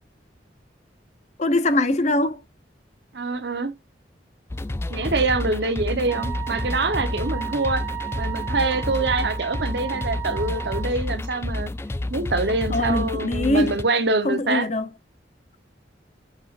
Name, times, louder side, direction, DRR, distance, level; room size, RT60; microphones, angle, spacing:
voice 1, 1.4-2.4 12.7-13.7 14.2-14.8, left 2 dB, 40° left, 0.7 m, -22 dB
voice 2, 3.1-3.7 4.9-7.8 8.1-11.7 12.1-14.7, right 3 dB, 65° right, 1.0 m, -25 dB
sound 1, 4.5-13.8, left 1 dB, 15° left, 0.3 m, -30 dB
Wind instrument woodwind instrument, 6.1-10.9, right 14 dB, 10° right, 1.1 m, -34 dB
6.9 x 5.8 x 2.5 m
head